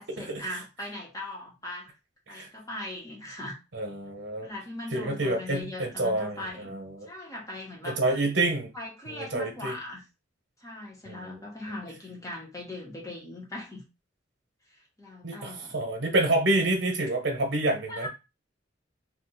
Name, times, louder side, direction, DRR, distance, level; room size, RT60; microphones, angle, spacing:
voice 1, 0.0-1.9 2.3-3.6 4.4-6.7 7.1-8.0 8.7-10.0 10.6-13.8 15.0-15.7 17.9-18.1, left 1 dB, 20° left, -2 dB, 1.2 m, -39 dB
voice 2, 3.7-4.5 4.9-7.1 7.8-8.7 9.1-9.7 11.1-11.4 15.2-18.1, right 2 dB, 85° right, 2 dB, 1.0 m, -28 dB
2.6 x 2.5 x 3.9 m, 0.26 s
head